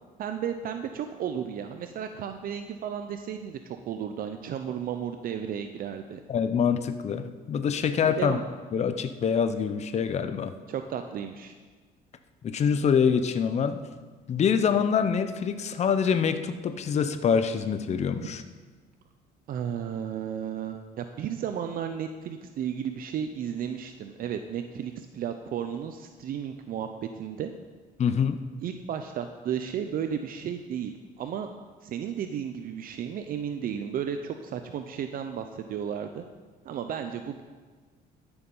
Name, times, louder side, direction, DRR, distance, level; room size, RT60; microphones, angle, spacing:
voice 1, 0.2-3.6 3.9-6.2 8.2-8.4 10.7-11.6 18.2-18.3 19.5-26.9 27.1-27.5 28.6-30.9 31.2-31.5 31.8-36.2 36.6-37.4, right 8 dB, 60° right, 7 dB, 0.7 m, -33 dB
voice 2, 6.3-8.4 8.7-10.5 12.4-13.8 14.3-18.4 28.0-28.4, left 7 dB, 40° left, 10 dB, 0.7 m, -25 dB
13.0 x 7.0 x 5.5 m, 1.4 s
cardioid pair, 110°, 17 cm